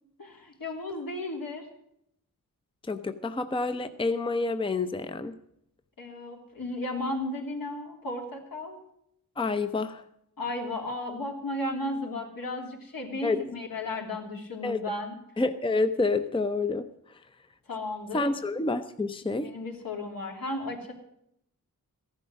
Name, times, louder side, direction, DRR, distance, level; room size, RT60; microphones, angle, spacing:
voice 1, 0.2-1.6 6.0-8.8 10.4-15.1 17.7-18.4 19.2-20.9, left 2 dB, 70° left, 1 dB, 3.2 m, -34 dB
voice 2, 2.9-5.3 9.4-10.0 13.2-13.4 14.6-14.8 15.4-16.9 18.1-19.5, left 3 dB, 15° left, 10 dB, 0.7 m, -28 dB
14.5 x 11.5 x 6.3 m, 0.75 s
wide cardioid pair, 115°, 35 cm